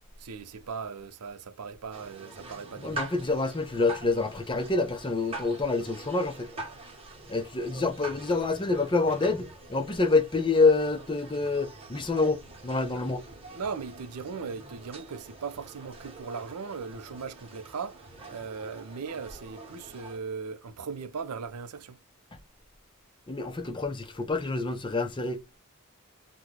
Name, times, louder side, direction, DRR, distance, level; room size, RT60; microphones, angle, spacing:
voice 1, 0.2-3.1 13.5-22.0, right 5 dB, 90° right, 0.5 m, -38 dB
sound 1, 1.9-20.2, right 2 dB, 25° right, 1.1 m, -45 dB
voice 2, 2.8-6.5 7.3-13.2 23.3-25.4, left 3 dB, 20° left, 0.6 m, -27 dB
2.9 x 2.2 x 3.7 m
head